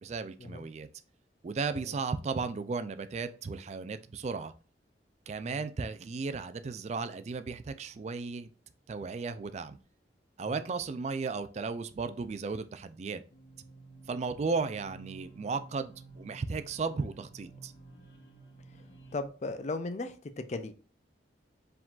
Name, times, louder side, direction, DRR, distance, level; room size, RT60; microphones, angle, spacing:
voice 1, 0.0-0.9 1.4-4.5 5.3-8.5 8.9-9.8 10.4-13.2 14.1-17.7, right 4 dB, 40° right, 12 dB, 0.3 m, -35 dB
sound 1, 13.3-19.3, right 3 dB, 70° left, 0.9 m, -52 dB
voice 2, 19.1-20.7, left 2 dB, 40° left, 10 dB, 0.4 m, -37 dB
4.7 x 3.7 x 2.4 m, 0.37 s
head